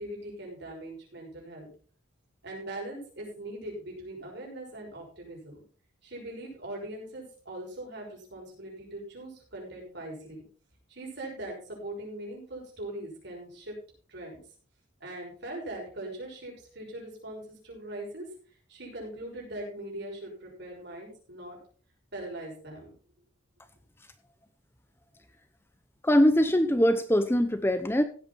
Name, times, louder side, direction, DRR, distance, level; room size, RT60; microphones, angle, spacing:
voice 1, 0.0-1.7 2.4-5.6 6.0-10.4 10.9-13.7 14.1-14.4 15.0-18.3 18.7-21.6 22.1-22.9, right 1 dB, 55° right, 0 dB, 6.1 m, -41 dB
voice 2, 26.0-28.0, equal, 10° left, 10 dB, 0.7 m, -22 dB
16.0 x 8.5 x 4.2 m, 0.41 s
head